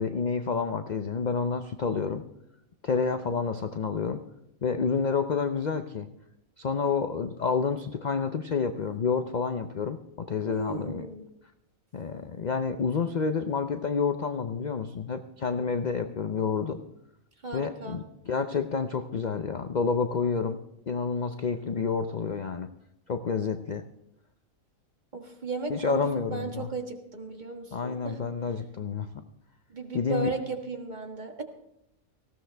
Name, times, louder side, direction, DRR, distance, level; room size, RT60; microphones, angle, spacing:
voice 1, 0.0-2.2 2.8-4.2 4.6-6.1 6.6-11.1 11.9-16.8 17.5-20.6 20.9-22.7 23.1-23.8 25.7-26.7 27.7-29.2 29.9-30.3, left 5 dB, 45° left, 8 dB, 0.6 m, -29 dB
voice 2, 10.5-11.3 17.4-18.0 25.1-28.3 29.7-31.4, right 3 dB, 35° right, 4 dB, 1.6 m, -35 dB
19.0 x 15.5 x 3.4 m, 0.81 s
omnidirectional pair, 1.4 m